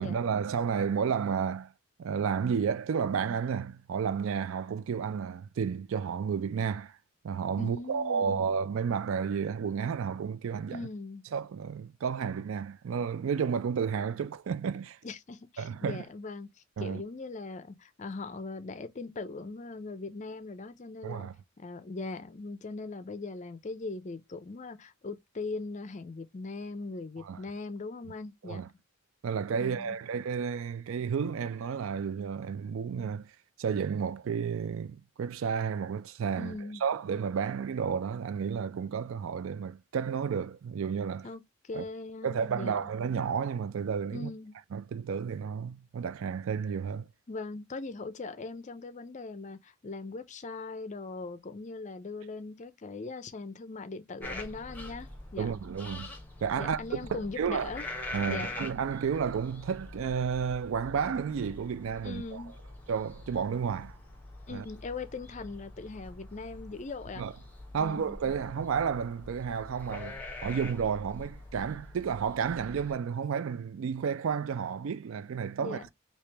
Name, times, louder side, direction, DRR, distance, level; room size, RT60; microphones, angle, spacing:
voice 1, 0.0-1.7 2.0-7.0 7.2-10.9 11.3-15.0 15.6-16.0 16.8-17.0 21.0-21.3 27.2-27.4 28.4-28.7 29.2-33.3 33.6-41.3 41.7-41.9 42.2-44.3 44.7-47.1 55.4-56.1 56.4-56.8 57.1-57.7 58.1-62.4 62.9-64.0 64.5-64.6 67.2-67.3 67.7-75.8, right 6 dB, 65° right, 0.3 m, -32 dB
voice 2, 7.6-8.4 10.7-11.2 15.0-21.3 21.6-28.7 29.6-30.0 36.4-36.8 41.2-42.9 44.1-44.5 47.3-55.6 56.5-57.9 58.3-58.6 62.0-62.5 64.5-67.2 67.8-68.2 75.6-75.9, left 3 dB, 35° left, 0.5 m, -40 dB
sound 1, 54.2-72.9, left 2 dB, 10° left, 0.8 m, -44 dB
3.1 x 2.9 x 3.3 m
head